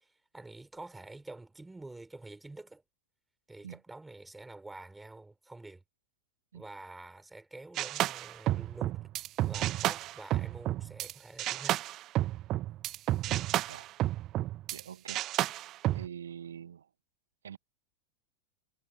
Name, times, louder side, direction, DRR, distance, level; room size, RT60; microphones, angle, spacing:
voice 1, 0.0-2.8 3.5-5.8 6.5-9.0 9.4-11.8, right 2 dB, 5° right, 5.3 m, -48 dB
sound 1, 7.8-11.1 11.4-14.8 15.1-16.1, right 15 dB, 35° right, 1.3 m, -31 dB
voice 2, 14.7-15.3 15.9-16.8 17.4-17.6, right 8 dB, 65° right, 1.1 m, -44 dB
figure-of-eight pair, 90°, 0 cm